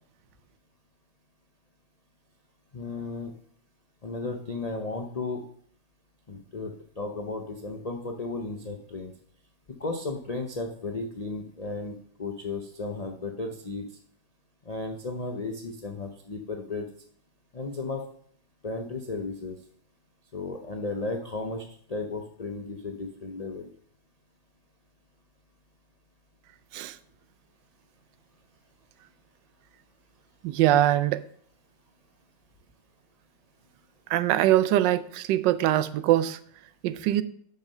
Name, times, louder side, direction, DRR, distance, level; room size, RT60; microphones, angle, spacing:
voice 1, 2.7-3.3 4.0-5.4 6.3-9.1 9.8-13.9 14.7-16.9 17.5-18.0 18.6-19.6 20.3-23.7, left 3 dB, 60° left, 0.4 m, -34 dB
voice 2, 30.4-31.2 34.1-36.4 36.8-37.2, right 13 dB, 80° right, 1.2 m, -23 dB
8.9 x 6.0 x 5.5 m
omnidirectional pair, 1.9 m